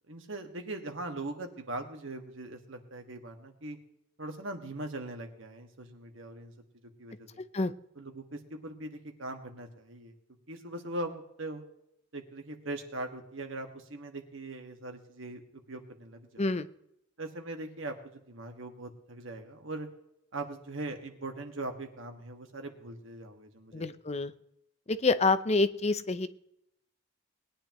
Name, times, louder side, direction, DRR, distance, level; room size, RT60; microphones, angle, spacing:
voice 1, 0.1-3.8 4.2-6.5 7.0-7.4 8.0-10.1 10.5-11.6 12.1-15.4 15.7-16.5 17.2-19.9 20.3-23.8, right 2 dB, 80° right, 4 dB, 1.8 m, -40 dB
voice 2, 7.4-7.7 16.4-16.7 23.7-24.3 24.9-26.3, left 3 dB, 35° left, 12 dB, 0.6 m, -27 dB
20.5 x 10.0 x 3.0 m, 0.76 s
head